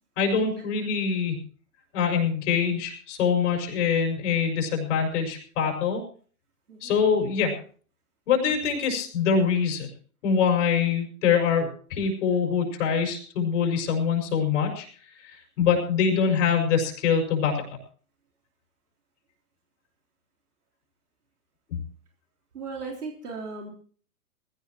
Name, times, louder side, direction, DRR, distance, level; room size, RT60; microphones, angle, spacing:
voice 1, 0.2-1.4 1.9-6.0 6.8-7.5 8.3-9.9 10.2-14.9 15.2-17.6 21.7-21.8, left 6 dB, 50° left, 2 dB, 5.6 m, -24 dB
voice 2, 22.5-23.7, right 4 dB, 75° right, 0 dB, 3.9 m, -37 dB
21.0 x 16.5 x 3.0 m, 0.43 s
hypercardioid pair, 120°, 46 cm